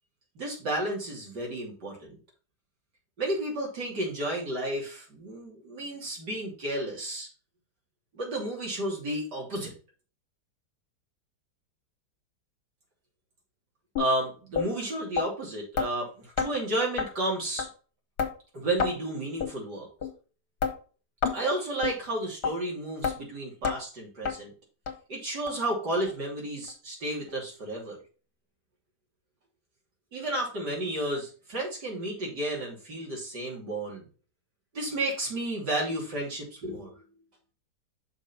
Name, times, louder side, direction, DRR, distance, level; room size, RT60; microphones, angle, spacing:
voice 1, 0.4-2.2 3.2-7.3 8.1-9.7 14.0-17.7 18.5-19.9 21.3-24.5 25.1-28.0 30.1-34.1 34.7-37.0, right 1 dB, 80° right, -2 dB, 3.4 m, -32 dB
sound 1, 14.0-14.1 14.6-14.7 15.2-15.3 15.8-15.9 16.4-16.5 17.0-17.1 17.6-17.7 18.2-18.3 18.8-18.9 19.4-19.5 20.0-20.1 20.6-20.7 21.2-21.4 21.8-22.0 22.4-22.5 23.0-23.2 23.6-23.8 24.3-24.4 24.9-25.0 25.5-25.6 26.1-26.2 26.7-26.8, left 6 dB, 70° left, 1.7 m, -28 dB
6.2 x 4.5 x 5.3 m, 0.38 s
omnidirectional pair, 1.8 m